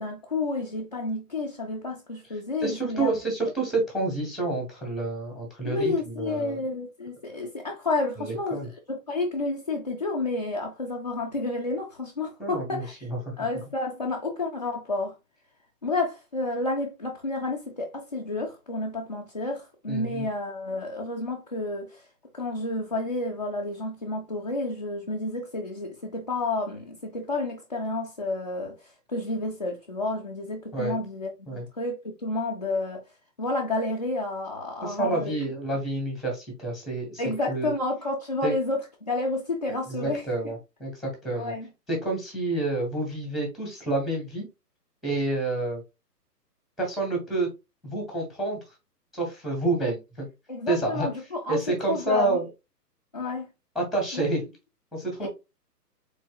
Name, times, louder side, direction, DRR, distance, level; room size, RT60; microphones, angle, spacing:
voice 1, 0.0-3.1 5.6-13.1 13.4-15.1 15.8-22.1 22.3-33.0 33.4-35.3 37.2-40.5 41.4-41.7 50.5-51.6 51.9-52.4 53.1-53.5 54.1-54.3 55.2-55.3, left 2 dB, 30° left, 0.4 m, -30 dB
voice 2, 2.6-6.6 8.2-8.7 12.4-13.3 19.9-20.3 30.7-31.0 31.5-31.6 34.8-37.2 37.5-37.7 38.4-38.5 39.9-41.5 41.9-44.5 45.0-45.8 46.8-47.5 47.8-48.6 49.1-50.3 50.7-51.1 51.5-52.5 53.7-54.4 54.9-55.3, right 2 dB, ahead, 1.1 m, -28 dB
4.5 x 3.9 x 2.3 m
figure-of-eight pair, 130°, 49 cm